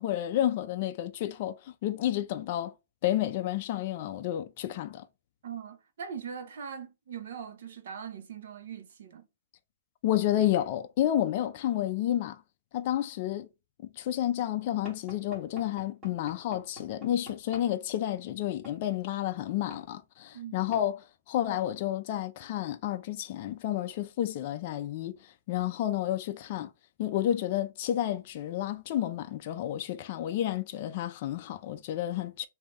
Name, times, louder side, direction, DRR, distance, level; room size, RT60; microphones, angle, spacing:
voice 1, 0.0-2.7 3.0-5.1 10.0-12.4 12.7-13.5 13.9-26.7 27.0-32.5, left 12 dB, 40° left, 0.4 m, -30 dB
voice 2, 5.4-9.3 20.3-20.5, right 7 dB, 60° right, 0.7 m, -41 dB
Knock / Wood, 14.9-17.7 18.6-18.8 19.7-19.9 20.7-20.9, left 1 dB, 15° right, 1.6 m, -48 dB
3.3 x 2.6 x 3.5 m
hypercardioid pair, 160°, 0 cm